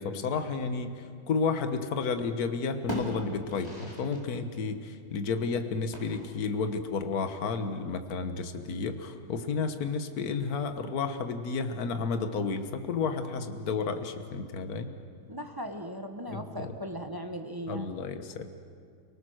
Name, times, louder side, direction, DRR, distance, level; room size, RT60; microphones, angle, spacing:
voice 1, 0.0-14.9 16.3-16.7 17.7-18.4, left 4 dB, 50° left, 8 dB, 1.7 m, -32 dB
sound 1, 1.6-2.3 2.6-4.3 4.5-4.6 5.9-6.6, left 1 dB, 10° left, 4.7 m, -39 dB
voice 2, 15.3-18.0, equal, 15° right, 5 dB, 0.8 m, -38 dB
30.0 x 19.0 x 6.4 m, 2.3 s
omnidirectional pair, 2.2 m